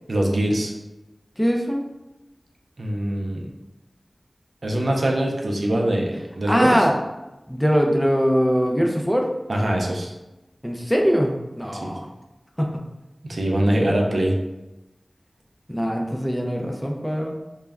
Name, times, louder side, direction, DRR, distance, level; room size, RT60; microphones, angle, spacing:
voice 1, 0.1-0.7 2.8-3.5 4.6-6.7 9.5-10.1 11.8-11.9 13.2-14.4, right 1 dB, 85° right, 0 dB, 0.4 m, -23 dB
voice 2, 1.4-1.8 6.5-7.0 7.5-9.3 10.6-12.1 12.6-12.8 15.7-17.4, equal, 5° left, 0 dB, 0.4 m, -22 dB
2.2 x 2.0 x 3.4 m, 0.99 s
wide cardioid pair, 70°, 0 cm